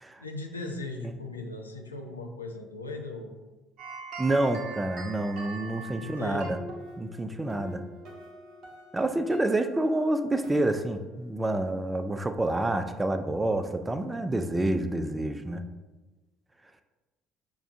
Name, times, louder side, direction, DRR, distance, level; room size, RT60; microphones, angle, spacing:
voice 1, 0.2-3.3 6.0-6.5, left 2 dB, 85° left, 3 dB, 0.3 m, -38 dB
sound 1, 3.8-11.3, right 3 dB, 55° right, 0.8 m, -44 dB
voice 2, 4.2-6.6 7.0-7.8 8.9-15.6, right 1 dB, 15° right, 8 dB, 0.3 m, -28 dB
5.8 x 2.2 x 2.5 m, 1.2 s
figure-of-eight pair, 55°, 0 cm